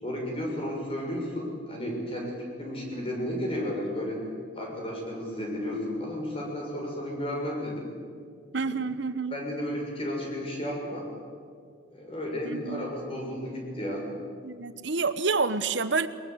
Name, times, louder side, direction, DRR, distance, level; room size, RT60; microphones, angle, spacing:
voice 1, 0.0-4.2 4.5-7.9 9.3-11.1 11.9-14.1, equal, 30° left, -1 dB, 6.5 m, -33 dB
voice 2, 8.5-9.4 12.4-12.9 14.4-16.1, right 4 dB, 65° right, 12 dB, 1.1 m, -28 dB
22.5 x 21.5 x 8.3 m, 2.1 s
head